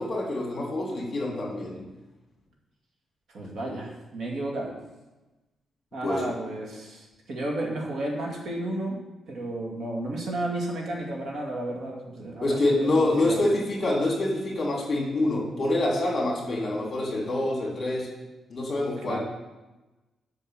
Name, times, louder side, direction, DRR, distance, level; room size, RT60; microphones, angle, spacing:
voice 1, 0.0-1.8 6.0-6.3 12.4-18.1 18.5-19.2, left 2 dB, 30° left, -2 dB, 2.8 m, -26 dB
voice 2, 3.3-4.8 5.9-9.0 9.3-13.4 19.0-19.2, right 1 dB, 65° right, -1 dB, 2.3 m, -32 dB
7.5 x 6.4 x 7.7 m, 1.1 s
wide cardioid pair, 145°, 0 cm